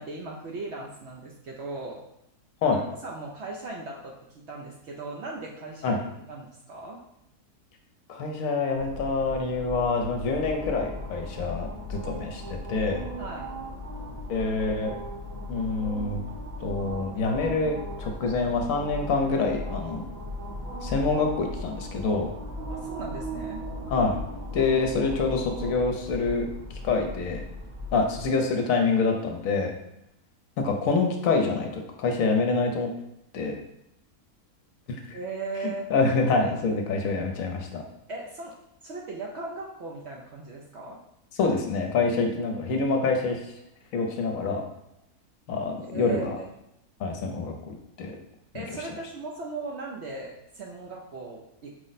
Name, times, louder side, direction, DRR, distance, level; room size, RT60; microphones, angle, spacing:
voice 1, 0.0-2.0 2.7-7.0 13.2-13.5 22.7-23.6 35.1-35.9 38.1-38.5 38.8-41.0 45.9-46.5 48.5-51.7, right 3 dB, 65° right, -2 dB, 0.7 m, -38 dB
voice 2, 8.1-13.0 14.3-15.0 15.5-16.2 16.6-20.0 20.8-22.3 23.9-24.2 24.5-26.5 26.8-27.4 27.9-29.7 30.6-32.9 33.3-33.6 34.9-35.2 35.6-37.8 41.3-43.4 43.9-44.6 45.5-46.4 47.0-48.1, left 3 dB, 70° left, 3 dB, 1.0 m, -26 dB
sound 1, 8.8-28.3, left 1 dB, 85° right, 2.1 m, -37 dB
4.8 x 2.1 x 3.9 m, 0.81 s
omnidirectional pair, 1.5 m